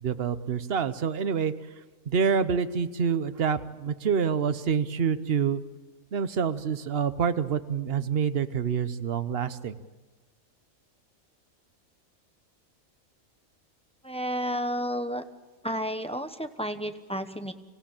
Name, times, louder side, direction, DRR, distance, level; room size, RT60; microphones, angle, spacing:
voice 1, 0.0-1.5 2.1-5.6 6.1-9.8, right 6 dB, 50° right, 13 dB, 1.0 m, -27 dB
voice 2, 14.0-15.2 15.6-17.5, equal, 5° left, 8 dB, 0.9 m, -31 dB
25.5 x 16.0 x 8.8 m, 1.2 s
omnidirectional pair, 1.5 m